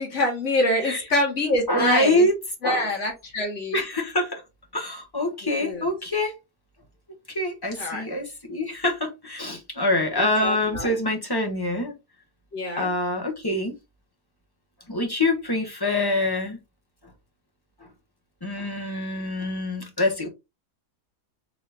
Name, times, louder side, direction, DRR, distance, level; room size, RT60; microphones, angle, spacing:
voice 1, 0.0-2.3 2.6-3.8 5.6-5.9 7.8-8.0 10.2-10.9 12.5-12.9, left 1 dB, 45° left, 2.4 m, -26 dB
voice 2, 1.7-2.4 2.6-2.9 3.7-4.4 4.7-6.4 7.3-11.9 12.8-13.7 14.9-16.6 18.4-20.3, left 1 dB, 15° left, 0.9 m, -25 dB
4.7 x 3.1 x 3.4 m
omnidirectional pair, 1.7 m